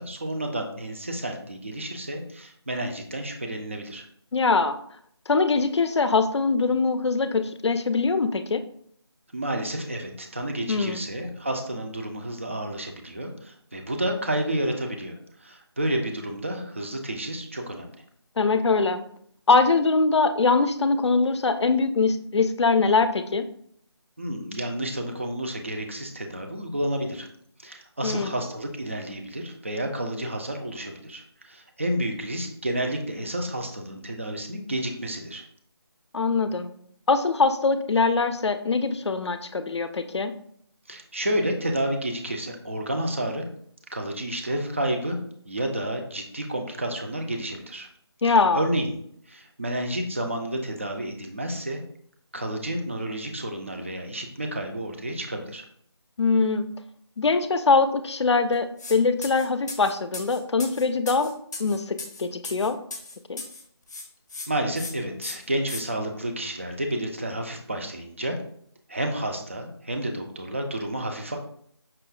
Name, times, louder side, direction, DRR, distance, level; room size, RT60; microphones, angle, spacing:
voice 1, 0.0-4.1 9.3-18.0 24.2-27.3 27.6-35.4 40.9-43.5 43.9-45.2 45.5-47.9 48.2-49.0 49.3-51.8 52.3-55.6 64.5-68.4 68.9-71.4, right 1 dB, 30° right, 3 dB, 0.3 m, -30 dB
voice 2, 4.3-4.8 5.3-8.6 10.7-11.0 18.4-19.0 19.5-23.4 28.0-28.3 36.1-36.7 37.1-40.3 48.2-48.6 56.2-56.7 57.2-61.3 61.6-62.8 63.3-63.4, left 4 dB, 80° left, 10 dB, 0.4 m, -22 dB
sound 1, 58.8-59.0 59.2-63.6 63.9-64.5 64.8-64.9 65.2-65.8, left 3 dB, 40° left, 0.6 m, -37 dB
5.4 x 2.0 x 2.3 m, 0.66 s
figure-of-eight pair, 165°, 14 cm